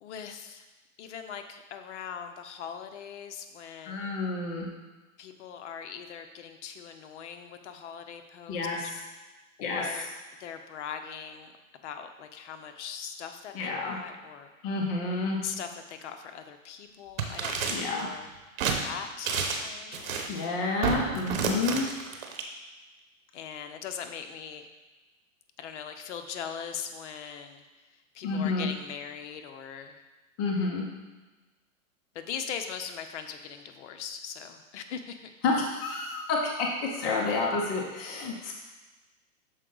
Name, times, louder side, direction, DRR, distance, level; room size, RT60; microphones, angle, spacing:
voice 1, 0.0-0.7 1.0-4.2 5.2-8.9 9.6-10.1 10.4-11.5 11.8-14.5 15.4-18.3 18.6-20.2 23.3-24.7 25.6-30.0 32.1-35.3, left 7 dB, 55° left, 7 dB, 0.7 m, -40 dB
voice 2, 3.9-4.7 8.5-8.8 9.6-10.1 13.5-14.0 14.6-15.4 17.7-18.1 20.3-21.9 28.2-28.7 30.4-30.8 35.4-38.6, left 3 dB, 15° left, -1 dB, 0.4 m, -29 dB
sound 1, 17.2-18.0 18.6-18.8 19.2-19.7 19.9-20.5 21.1-22.4, right 5 dB, 75° right, 1.1 m, -31 dB
sound 2, 17.3-17.4 18.3-19.1 20.2-20.3 20.8-21.8, right 8 dB, 45° right, 0.6 m, -32 dB
6.4 x 4.5 x 3.8 m, 1.2 s
hypercardioid pair, 140°, 41 cm